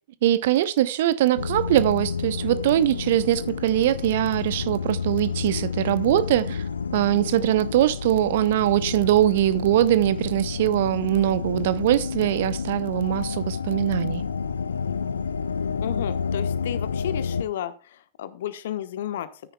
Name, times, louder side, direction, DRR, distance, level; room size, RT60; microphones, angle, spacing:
voice 1, 0.2-6.6 6.9-14.2, right 13 dB, 55° right, 0.8 m, -22 dB
sound 1, 1.4-17.4, left 5 dB, 75° left, 0.7 m, -30 dB
voice 2, 15.8-19.4, left 11 dB, 60° left, 1.2 m, -32 dB
13.5 x 10.0 x 2.3 m
figure-of-eight pair, 90°, 0 cm